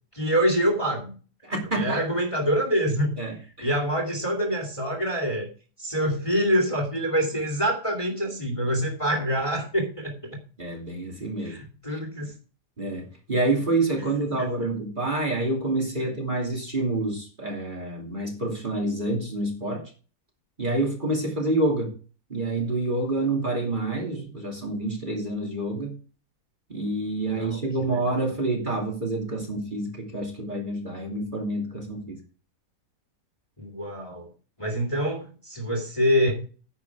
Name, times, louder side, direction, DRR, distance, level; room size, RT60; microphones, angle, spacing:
voice 1, 0.1-1.2 1.7-3.2 3.6-5.5 5.8-10.4 11.4-12.3 14.4-14.5 27.2-28.0 33.6-34.3 34.6-36.4, equal, 20° left, 3 dB, 2.6 m, -26 dB
voice 2, 1.4-2.0 3.2-3.7 10.6-11.6 11.9-12.0 12.8-19.9 20.6-21.9 22.3-25.9 26.7-32.2, right 2 dB, 30° right, 0 dB, 2.9 m, -28 dB
10.0 x 7.7 x 4.8 m, 0.37 s
omnidirectional pair, 1.7 m